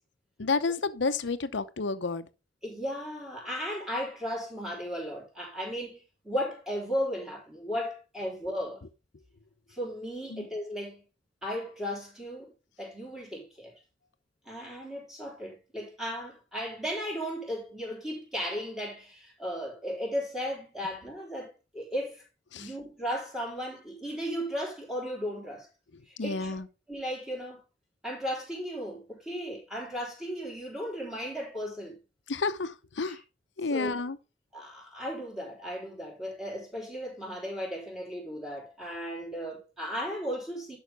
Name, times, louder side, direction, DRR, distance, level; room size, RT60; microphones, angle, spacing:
voice 1, 0.4-2.3 10.3-10.5 22.5-22.7 25.9-26.7 32.3-33.2 33.6-34.2, left 4 dB, 75° left, 0.7 m, -31 dB
voice 2, 2.6-8.8 9.7-11.0 11.4-12.5 12.8-13.7 14.5-22.2 22.6-25.7 26.1-26.6 26.9-27.6 28.0-32.0 33.1-33.2 33.7-33.9 34.5-40.8, equal, 5° right, 3.7 m, -35 dB
11.0 x 5.7 x 3.4 m
head